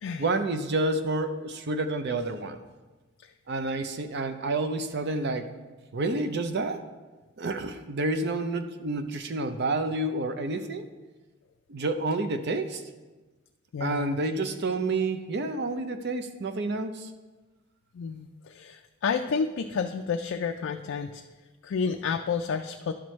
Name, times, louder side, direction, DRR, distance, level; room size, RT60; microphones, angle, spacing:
voice 1, 0.2-2.6 3.5-5.5 5.9-6.8 7.4-10.9 11.7-12.8 13.8-17.1, right 2 dB, 55° right, 9 dB, 0.5 m, -29 dB
voice 2, 13.7-14.2 17.9-21.2 21.6-22.9, left 5 dB, 70° left, 5 dB, 0.3 m, -30 dB
11.0 x 6.0 x 3.1 m, 1.3 s
head